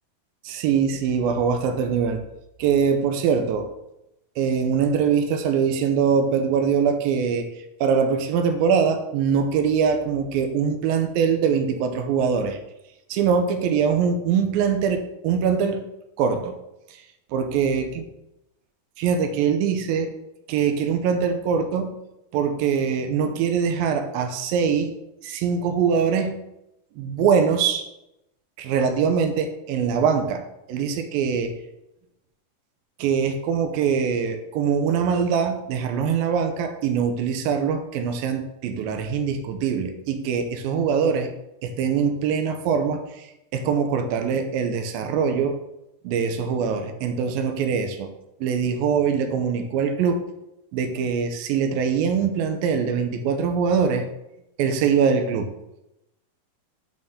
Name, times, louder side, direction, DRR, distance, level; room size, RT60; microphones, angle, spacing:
voice 1, 0.4-2.2 2.6-3.7 4.4-7.5 7.8-12.6 13.1-15.9 16.2-16.5 17.3-17.9 19.0-20.1 20.5-21.9 22.3-24.9 25.2-26.4 27.0-27.8 28.6-30.4 30.7-31.5 33.0-41.3 41.6-43.3 43.5-45.6 46.0-48.1 48.4-50.2 50.7-54.1 54.6-55.6, right 6 dB, 85° right, 6 dB, 2.4 m, -23 dB
9.1 x 4.2 x 3.6 m, 0.87 s
omnidirectional pair, 4.2 m